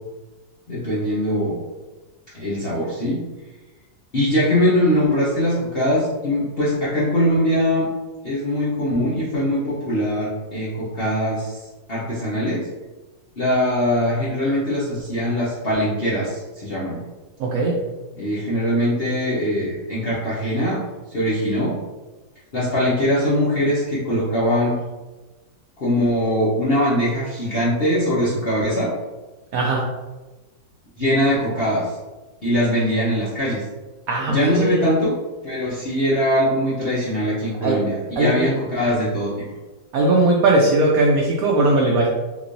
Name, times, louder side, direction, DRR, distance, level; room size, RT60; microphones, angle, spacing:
voice 1, 0.7-1.6 2.3-3.2 4.1-7.9 8.2-11.6 11.9-12.6 13.4-17.0 18.2-20.8 21.1-21.8 22.5-24.8 25.8-28.9 31.0-31.9 32.4-33.6 34.3-35.1 35.4-39.3, equal, 55° left, -9 dB, 0.6 m, -21 dB
voice 2, 17.4-17.7 29.5-29.8 34.1-34.8 37.6-37.8 38.2-38.5 39.9-42.1, right 2 dB, 80° right, -1 dB, 0.7 m, -18 dB
3.6 x 3.0 x 2.5 m, 1.2 s
omnidirectional pair, 2.1 m